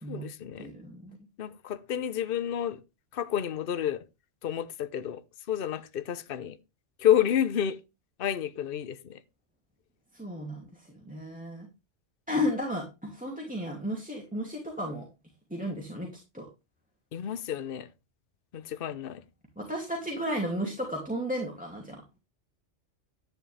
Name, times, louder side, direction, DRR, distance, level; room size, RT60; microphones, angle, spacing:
voice 1, 0.1-0.7 1.4-2.8 3.1-4.0 4.4-5.2 5.5-6.6 7.0-7.8 8.2-9.2 17.1-17.9 18.5-19.2, left 10 dB, 55° left, 0.9 m, -29 dB
voice 2, 0.6-1.2 10.1-11.7 12.3-15.0 15.5-16.1 16.3-16.5 19.6-22.0, equal, 5° right, 2.6 m, -33 dB
11.0 x 10.0 x 3.4 m
omnidirectional pair, 1.2 m